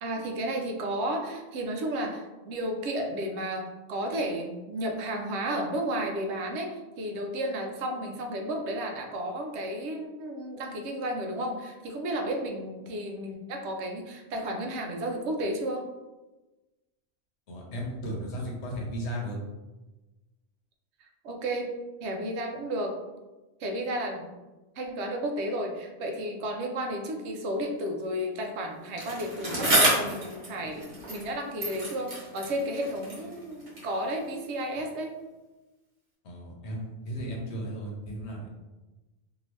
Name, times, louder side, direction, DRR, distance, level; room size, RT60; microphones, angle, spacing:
voice 1, 0.0-15.8 21.0-21.7 22.0-23.0 23.6-24.3 24.8-35.2, right 1 dB, 70° right, 3 dB, 0.8 m, -33 dB
voice 2, 17.5-19.4 36.2-38.5, equal, 70° left, -1 dB, 1.0 m, -35 dB
Bicycle, 29.0-31.3 31.6-34.0 34.7-34.8, right 1 dB, 40° right, 1.0 m, -29 dB
2.7 x 2.7 x 3.1 m, 1.1 s
omnidirectional pair, 1.2 m